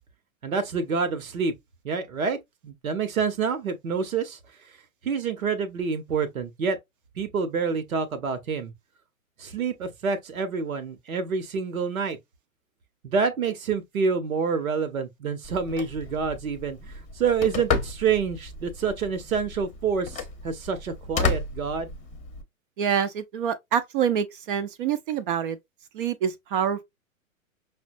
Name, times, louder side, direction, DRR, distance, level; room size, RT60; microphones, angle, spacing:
voice 1, 0.4-1.5 1.8-2.4 2.6-4.4 5.0-6.8 7.2-8.7 9.4-12.2 13.0-22.0, right 5 dB, 80° right, 0.9 m, -27 dB
Telephone, 15.4-22.4, left 4 dB, 15° left, 0.8 m, -33 dB
voice 2, 22.8-25.6 25.9-26.8, right 8 dB, 40° right, 0.5 m, -26 dB
5.6 x 2.2 x 2.6 m
hypercardioid pair, 115°, 41 cm